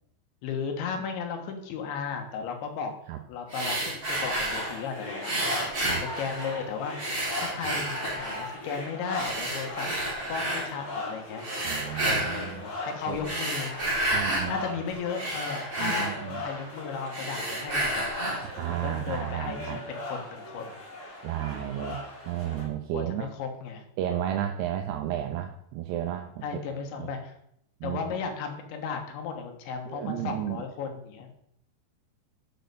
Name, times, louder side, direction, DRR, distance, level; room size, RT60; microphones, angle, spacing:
voice 1, 0.4-3.0 3.3-5.4 5.8-7.1 7.4-9.9 10.3-11.4 12.0-13.7 14.3-18.1 18.8-20.8 21.8-22.0 22.9-23.9 26.4-27.4 27.8-31.3, left 6 dB, 80° left, 4 dB, 3.5 m, -35 dB
sound 1, 3.5-4.8 5.2-6.6 7.0-8.5 9.1-10.7 11.4-12.5 13.1-14.5 14.9-16.7 17.1-18.5, right 1 dB, 30° right, 1.0 m, -31 dB
sound 2, 4.5-22.6, left 2 dB, 45° left, 4.9 m, -39 dB
voice 2, 11.6-12.6 13.1-13.3 14.1-14.6 15.8-16.4 18.6-19.8 21.2-22.0 22.3-23.3 24.0-26.4 27.0-27.1 27.8-28.1 29.9-30.6, right 11 dB, 80° right, 5 dB, 2.6 m, -32 dB
7.8 x 6.3 x 6.8 m, 0.72 s
omnidirectional pair, 5.2 m